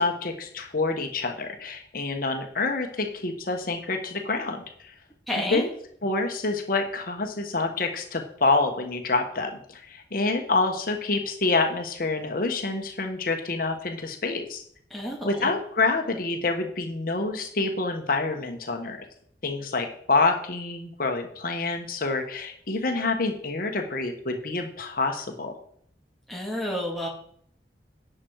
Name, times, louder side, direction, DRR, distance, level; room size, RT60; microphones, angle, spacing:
voice 1, 0.0-4.9 5.5-5.7 6.0-14.6 15.2-19.1 19.4-25.5, left 3 dB, 55° left, 4 dB, 1.3 m, -27 dB
voice 2, 5.3-5.6 14.9-15.5 26.3-27.1, left 1 dB, ahead, -2 dB, 2.2 m, -30 dB
11.0 x 7.7 x 4.7 m, 0.63 s
head